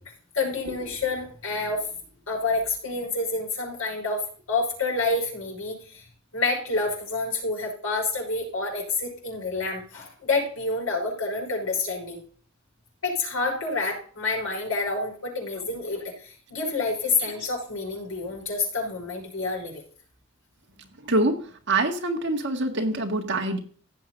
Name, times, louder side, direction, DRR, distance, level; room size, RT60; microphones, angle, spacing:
voice 1, 0.3-1.9 2.3-6.1 6.3-12.2 13.0-19.8, left 3 dB, 85° left, 0 dB, 5.7 m, -28 dB
voice 2, 21.1-21.4 21.7-23.6, right 2 dB, 60° right, 3 dB, 1.8 m, -24 dB
16.0 x 7.8 x 2.7 m, 0.44 s
head